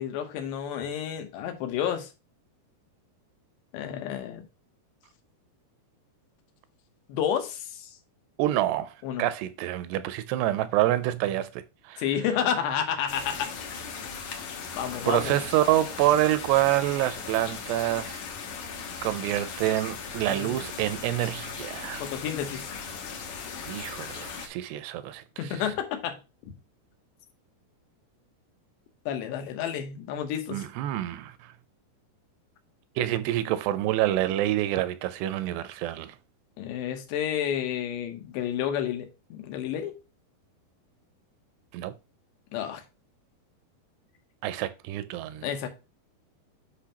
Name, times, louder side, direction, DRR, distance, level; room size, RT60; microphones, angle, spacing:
voice 1, 0.0-2.1 3.7-4.5 7.1-7.9 9.0-9.3 12.0-13.5 14.7-15.3 20.3-20.6 22.0-22.7 25.4-26.2 29.1-30.6 36.6-39.9 42.5-42.8 45.4-45.7, left 9 dB, 85° left, 3.2 m, -30 dB
voice 2, 8.4-12.0 15.1-18.2 19.0-22.1 23.7-25.6 30.5-31.5 33.0-36.2 41.7-41.9 44.4-45.5, right 14 dB, 85° right, 2.6 m, -27 dB
sound 1, 13.1-24.5, left 6 dB, 70° left, 1.9 m, -38 dB
8.2 x 5.3 x 2.9 m
omnidirectional pair, 4.9 m